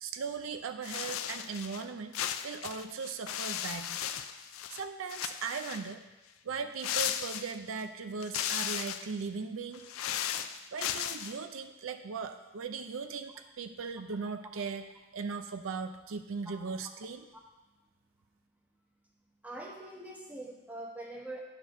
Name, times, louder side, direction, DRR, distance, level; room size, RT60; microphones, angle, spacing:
voice 1, 0.0-2.2 2.4-4.0 4.7-6.0 6.4-9.9 10.7-14.8 15.1-17.2, right 5 dB, 75° right, 8 dB, 0.5 m, -38 dB
sound 1, 0.8-1.8 2.1-4.8 5.1-5.9 6.8-7.8 8.2-9.1 9.7-11.4, left 10 dB, 85° left, 0.4 m, -36 dB
voice 2, 19.4-21.4, right 1 dB, 5° right, -1 dB, 0.9 m, -43 dB
9.7 x 4.5 x 6.0 m, 1.1 s
head